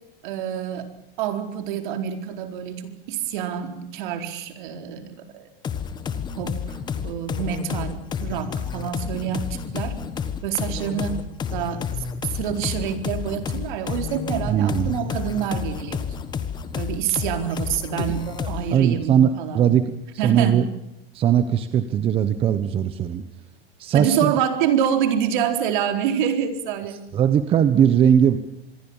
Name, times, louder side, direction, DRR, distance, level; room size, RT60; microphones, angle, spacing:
voice 1, 0.2-0.9 1.2-5.5 6.4-6.8 7.0-10.0 10.4-11.2 11.5-11.9 12.3-16.1 16.7-19.7 20.2-20.6 23.9-27.0, right 8 dB, 55° right, 7 dB, 4.2 m, -27 dB
sound 1, 5.6-18.8, left 7 dB, 15° left, 1.4 m, -30 dB
voice 2, 14.5-15.0 18.0-19.9 20.2-20.6 21.1-23.2 23.8-24.3 27.1-28.4, right 9 dB, 20° right, 10 dB, 1.1 m, -20 dB
26.5 x 21.5 x 7.3 m, 0.85 s
supercardioid pair, 165°, 30 cm